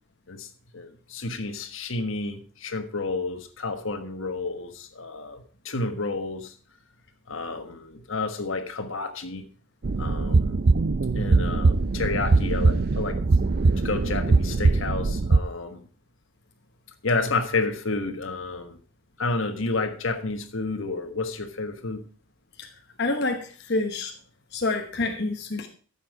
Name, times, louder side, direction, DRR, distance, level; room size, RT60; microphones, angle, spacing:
voice 1, 0.7-6.5 7.3-9.5 10.0-10.6 11.1-13.2 13.8-15.9 17.0-18.8 19.2-22.0, left 3 dB, 70° left, 1.4 m, -30 dB
sound 1, 9.8-15.4, right 3 dB, 50° right, 0.5 m, -21 dB
voice 2, 23.0-24.1 24.5-25.7, left 2 dB, 55° left, 1.1 m, -27 dB
13.5 x 7.3 x 4.8 m
head